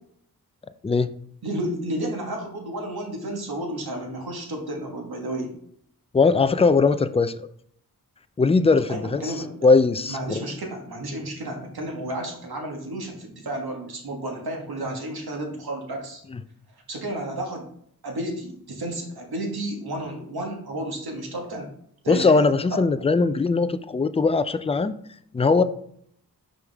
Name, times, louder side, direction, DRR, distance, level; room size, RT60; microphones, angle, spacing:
voice 1, 1.4-5.5 8.9-9.7 10.1-16.2 16.9-17.7 18.0-21.7 22.0-22.4 22.7-22.8, right 1 dB, 75° right, 1 dB, 1.6 m, -32 dB
voice 2, 6.1-7.5 8.4-9.3 9.6-10.4 22.1-24.9 25.3-25.6, left 4 dB, 15° left, 12 dB, 0.4 m, -20 dB
5.5 x 4.9 x 3.5 m, 0.66 s
cardioid pair, 50°, 37 cm